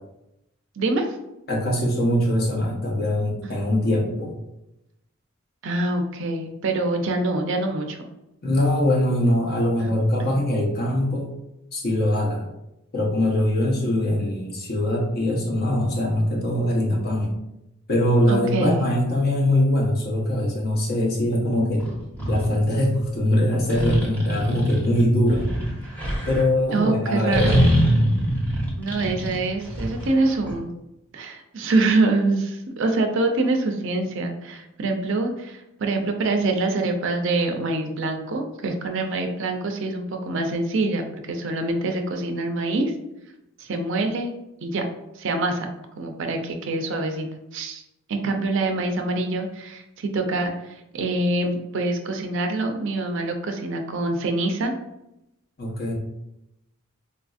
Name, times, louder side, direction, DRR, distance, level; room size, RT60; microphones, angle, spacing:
voice 1, 0.8-1.2 3.4-3.5 5.6-8.0 9.8-9.9 10.2-10.4 18.3-18.9 26.7-27.6 28.8-30.7 31.1-42.9 43.6-44.3 44.6-44.9 45.2-47.3 47.5-47.8 48.1-54.7, right 2 dB, 65° right, 4 dB, 0.5 m, -25 dB
voice 2, 1.5-4.3 8.4-11.3 11.7-12.5 12.9-17.3 17.9-21.8 22.3-25.5 26.3-27.7 55.6-55.9, left 1 dB, 50° left, -1 dB, 0.8 m, -22 dB
sound 1, 21.8-22.5 23.7-26.4 27.3-30.5, equal, 10° left, 0.8 m, -23 dB
3.9 x 2.5 x 2.4 m, 0.87 s
head